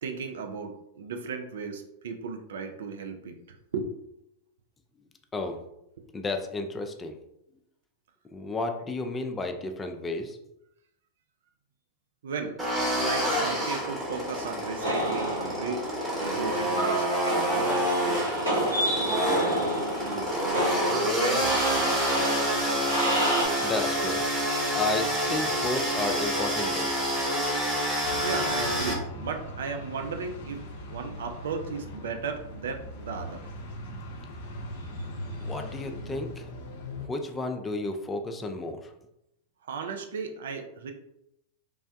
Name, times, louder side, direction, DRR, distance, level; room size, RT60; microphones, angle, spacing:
voice 1, 0.0-3.9 12.2-12.6 12.9-15.8 16.2-17.2 17.5-20.4 20.9-22.1 28.2-30.6 30.9-33.4 39.7-40.9, right 5 dB, 70° right, 5 dB, 0.4 m, -36 dB
voice 2, 6.1-7.2 8.3-10.4 23.6-24.2 24.7-26.9 35.4-36.5 37.1-38.9, left 3 dB, 20° left, 5 dB, 0.4 m, -32 dB
sound 1, 12.6-28.9, equal, 20° right, 1.0 m, -28 dB
sound 2, 14.8-23.5, right 1 dB, 90° right, 1.2 m, -29 dB
sound 3, 28.0-37.1, left 1 dB, 60° left, 0.6 m, -40 dB
3.2 x 2.2 x 2.6 m, 0.81 s
hypercardioid pair, 100°, 0 cm